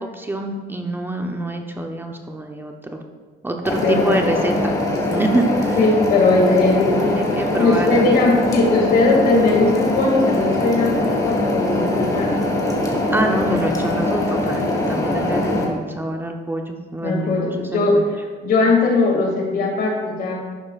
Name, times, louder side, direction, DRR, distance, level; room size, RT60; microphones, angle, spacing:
voice 1, 0.0-3.0 3.4-5.8 7.2-8.2 13.1-18.0, right 1 dB, 10° right, 3 dB, 0.7 m, -26 dB
sound 1, 3.6-15.6, left 1 dB, 20° left, 2.2 m, -22 dB
voice 2, 3.7-4.4 5.8-7.2 7.6-12.4 17.0-18.0 18.4-20.3, left 3 dB, 60° left, 0 dB, 2.3 m, -19 dB
11.5 x 8.4 x 2.5 m, 1.4 s
cardioid pair, 110°, 17 cm